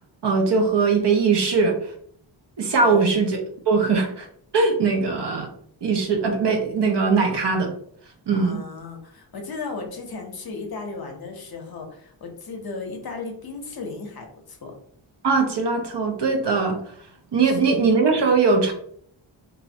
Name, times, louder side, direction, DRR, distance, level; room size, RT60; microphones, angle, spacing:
voice 1, 0.2-1.8 2.6-3.4 3.7-4.3 4.5-5.5 5.8-7.7 8.3-8.6 15.2-16.8 17.3-18.7, right 4 dB, 60° right, 3 dB, 0.6 m, -20 dB
voice 2, 8.4-14.7 17.4-17.8, left 4 dB, 55° left, 3 dB, 0.6 m, -35 dB
2.7 x 2.0 x 2.6 m, 0.63 s
wide cardioid pair, 95°, 46 cm